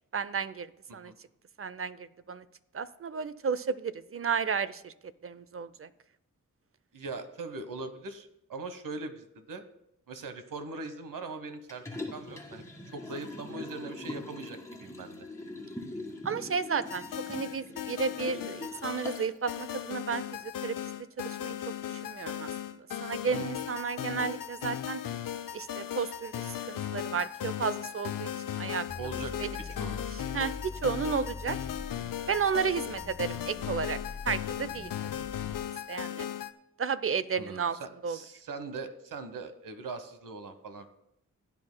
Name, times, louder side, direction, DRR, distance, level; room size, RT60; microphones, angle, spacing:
voice 1, 0.1-1.1 1.6-2.4 2.7-4.9 5.2-5.9 16.2-20.7 21.2-21.6 21.8-25.0 25.5-28.9 29.4-29.5 30.3-31.6 32.3-34.0 34.2-35.2 35.9-36.3 36.8-37.8 38.0-38.2, right 6 dB, 45° right, 15 dB, 0.5 m, -33 dB
voice 2, 6.9-9.7 10.1-12.7 12.9-15.3 23.2-23.5 29.0-29.3 29.8-30.1 37.3-40.9, right 3 dB, 75° right, 9 dB, 1.1 m, -41 dB
Liquid, 11.7-19.4 19.8-19.9, left 2 dB, 10° left, 1.7 m, -43 dB
sound 1, 16.9-36.5, left 10 dB, 85° left, 0.6 m, -37 dB
sound 2, 28.9-35.6, left 4 dB, 40° left, 1.0 m, -43 dB
16.0 x 9.7 x 2.2 m, 0.77 s
cardioid pair, 70°, 33 cm